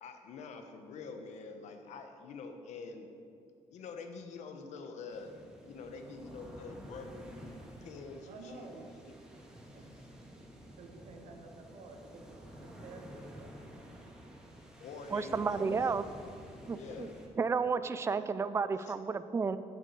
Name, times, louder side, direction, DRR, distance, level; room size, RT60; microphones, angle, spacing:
voice 1, 0.0-3.1 3.7-9.1 9.9-10.1 14.8-16.0 16.6-17.2 18.0-18.3 18.8-18.9, left 4 dB, 75° left, 6 dB, 1.3 m, -46 dB
sound 1, 5.1-17.3, right 1 dB, 5° right, 1.9 m, -51 dB
voice 2, 8.3-8.9 9.7-10.0 10.8-13.5, right 3 dB, 80° right, 3 dB, 1.7 m, -51 dB
voice 3, 15.1-16.0 16.7-17.1 17.4-19.6, right 5 dB, 25° right, 13 dB, 0.4 m, -32 dB
8.9 x 7.5 x 8.2 m, 2.5 s
cardioid pair, 125°, 12 cm